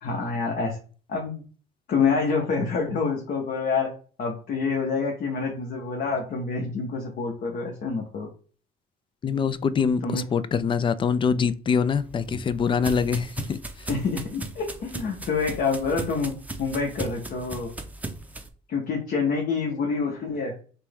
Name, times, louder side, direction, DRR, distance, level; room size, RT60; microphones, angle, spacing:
voice 1, 0.0-0.8 1.1-1.4 1.9-3.9 4.2-8.3 10.0-10.2 13.9-16.3 16.6-17.7 18.7-20.5, left 4 dB, 55° left, 1.2 m, -27 dB
voice 2, 9.2-13.9, left 6 dB, 30° left, 0.4 m, -24 dB
sound 1, 11.9-18.5, right 2 dB, 10° right, 0.6 m, -37 dB
5.8 x 2.3 x 3.5 m
cardioid pair, 110°, 17 cm